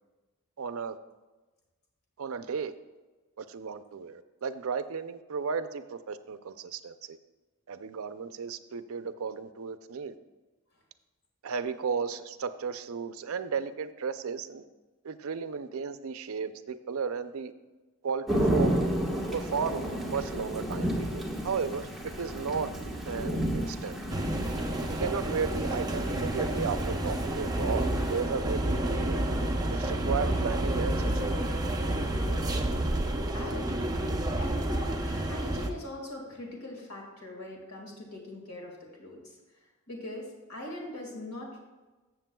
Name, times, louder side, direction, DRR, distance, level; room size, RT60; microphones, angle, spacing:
voice 1, 0.6-1.0 2.2-2.7 3.4-7.2 7.7-10.2 11.4-14.6 15.0-17.5 18.0-18.9 19.3-22.7 23.1-24.0 24.9-29.2 29.7-31.5, right 5 dB, 70° right, 11 dB, 0.5 m, -34 dB
Thunder / Rain, 18.3-28.2, equal, ahead, 1.3 m, -32 dB
Subway of Prague, 24.1-35.7, right 1 dB, 15° right, 0.7 m, -29 dB
voice 2, 33.3-34.0 34.4-39.4 39.9-41.6, left 1 dB, 85° left, 0 dB, 2.0 m, -41 dB
13.5 x 7.2 x 2.3 m, 1.2 s
head